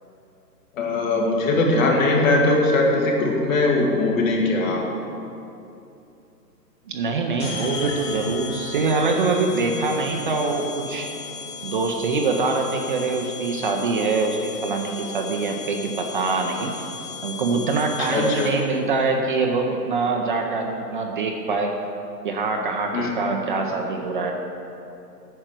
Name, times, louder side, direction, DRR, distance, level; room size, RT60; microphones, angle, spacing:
voice 1, 0.8-4.8 18.0-18.5 22.9-23.1, left 2 dB, 50° left, -1 dB, 2.2 m, -20 dB
voice 2, 6.9-11.1 11.6-16.8 17.2-21.7 22.2-24.3, right 3 dB, 30° right, 2 dB, 0.6 m, -24 dB
sound 1, 7.4-18.8, left 5 dB, 20° left, 1.3 m, -36 dB
9.0 x 6.6 x 7.5 m, 2.8 s
hypercardioid pair, 150°, 50 cm